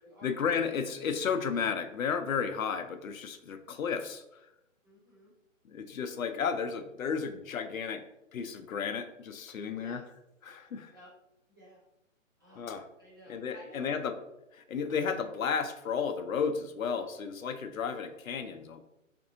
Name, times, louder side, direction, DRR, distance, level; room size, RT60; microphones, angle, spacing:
voice 1, 0.2-4.4 5.6-8.0 8.3-10.0 10.4-10.9 12.6-12.8 13.3-14.1 14.5-18.8, left 6 dB, 85° left, 8 dB, 0.5 m, -33 dB
voice 2, 4.8-5.3 9.6-10.0 10.9-11.1 11.5-11.8 12.4-12.6 13.0-14.1, left 1 dB, 15° right, -9 dB, 0.4 m, -52 dB
3.6 x 2.6 x 2.6 m, 0.89 s
hypercardioid pair, 145°, 40 cm